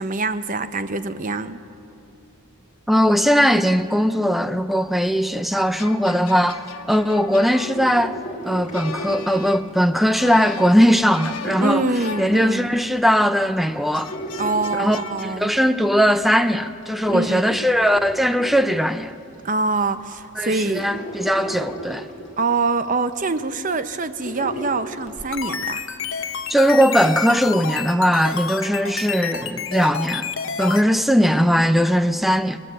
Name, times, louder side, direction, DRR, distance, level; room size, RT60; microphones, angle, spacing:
voice 1, 0.0-1.6 11.6-12.7 14.4-15.5 17.1-17.6 19.4-20.9 22.4-25.8, right 3 dB, 35° right, 0.7 m, -24 dB
voice 2, 2.9-6.6 6.9-8.2 8.4-11.9 12.2-14.1 14.7-19.1 20.4-22.1 26.5-30.3 30.6-32.6, equal, ahead, 0.5 m, -19 dB
sound 1, 5.5-13.0 13.9-15.4, left 5 dB, 80° left, 1.2 m, -38 dB
sound 2, 7.5-10.1 10.4-12.8 13.2-15.8 16.3-19.3 19.9-20.0 20.4-25.6 25.9-26.0, equal, 35° left, 2.7 m, -36 dB
sound 3, 25.1-30.8, left 7 dB, 60° left, 0.9 m, -29 dB
21.0 x 20.0 x 7.6 m
head